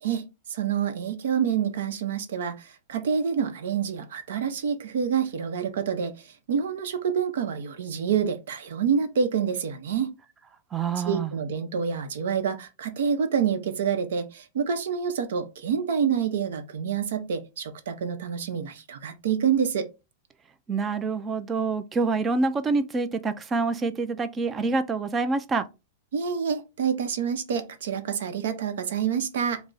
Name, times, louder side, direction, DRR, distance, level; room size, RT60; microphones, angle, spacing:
voice 1, 0.0-10.1 11.1-19.9 26.1-29.6, right 7 dB, 80° right, 0.7 m, -27 dB
voice 2, 10.7-11.3 20.7-25.6, right 4 dB, 20° right, 0.4 m, -26 dB
3.4 x 2.0 x 3.9 m
supercardioid pair, 145°, 0 cm